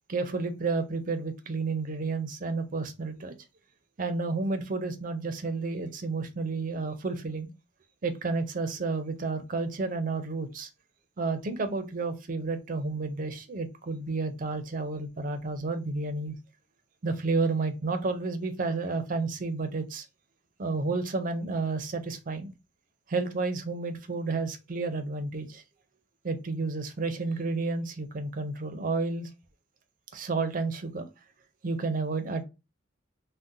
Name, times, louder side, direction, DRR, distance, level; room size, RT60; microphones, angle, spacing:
voice 1, 0.1-3.3 4.0-7.5 8.0-10.7 11.2-16.4 17.0-20.0 20.6-22.5 23.1-25.6 26.2-29.3 30.1-31.1 31.6-32.4, right 3 dB, 45° right, 0.5 m, -31 dB
2.7 x 2.1 x 3.7 m
head